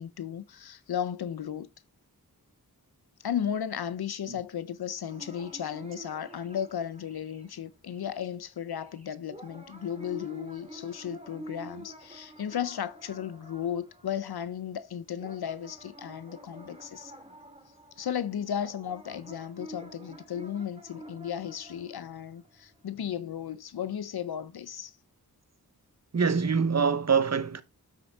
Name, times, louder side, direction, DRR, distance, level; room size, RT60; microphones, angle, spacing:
voice 1, 0.0-1.7 3.2-17.1 18.0-24.9, left 9 dB, 75° left, 0.6 m, -35 dB
sound 1, 5.1-7.6 7.9-8.3 8.7-14.8 15.2-22.8, right 1 dB, 15° right, 1.9 m, -49 dB
voice 2, 26.1-27.6, right 5 dB, 45° right, 0.8 m, -25 dB
7.8 x 6.4 x 3.4 m
wide cardioid pair, 75°, 38 cm